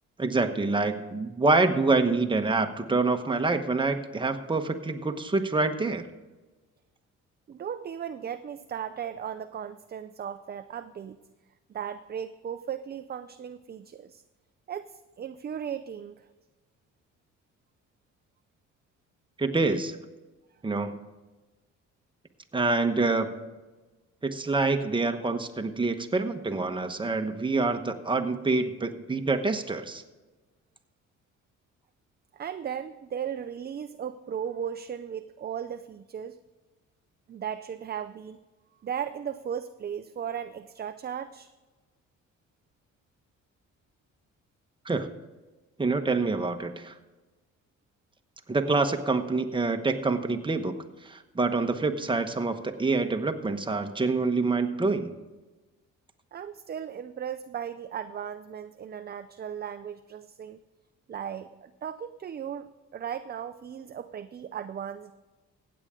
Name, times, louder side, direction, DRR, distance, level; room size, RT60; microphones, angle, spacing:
voice 1, 0.2-6.1 19.4-20.0 20.6-21.0 22.5-23.3 24.2-30.0 44.8-45.1 45.8-46.9 48.5-50.7 51.0-55.1, right 3 dB, 15° right, 6 dB, 1.1 m, -26 dB
voice 2, 7.5-11.2 11.7-14.2 14.7-16.3 32.3-36.4 37.3-38.4 38.8-41.5 56.3-60.6 61.1-65.1, right 8 dB, 35° right, 10 dB, 0.5 m, -36 dB
15.5 x 8.7 x 3.7 m, 1.2 s
cardioid pair, 90°, 30 cm